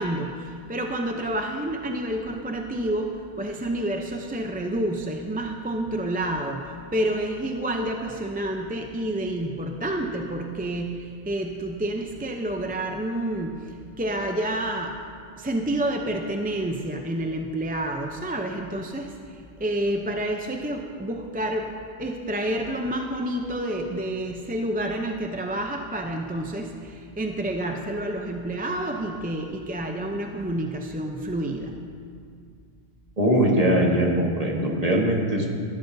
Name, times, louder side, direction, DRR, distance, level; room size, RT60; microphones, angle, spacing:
voice 1, 0.0-14.9 15.4-21.7 22.0-31.8, right 1 dB, 10° right, 2 dB, 0.5 m, -29 dB
voice 2, 33.2-35.5, right 1 dB, 35° right, -2 dB, 1.7 m, -21 dB
19.5 x 12.0 x 2.7 m, 2.2 s
omnidirectional pair, 1.1 m